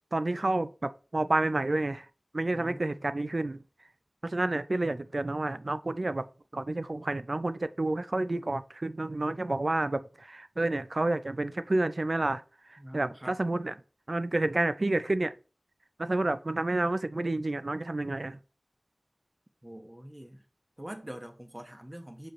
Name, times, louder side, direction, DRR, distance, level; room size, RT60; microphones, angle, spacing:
voice 1, 0.1-2.1 2.3-3.6 4.2-6.3 6.5-12.4 12.7-13.7 14.1-15.3 16.0-18.4, right 2 dB, 60° right, 0.4 m, -29 dB
voice 2, 2.5-3.0 12.8-13.4 19.6-20.4 20.8-22.3, equal, 25° right, 1.0 m, -44 dB
6.6 x 5.0 x 3.0 m
wide cardioid pair, 50°, 0 cm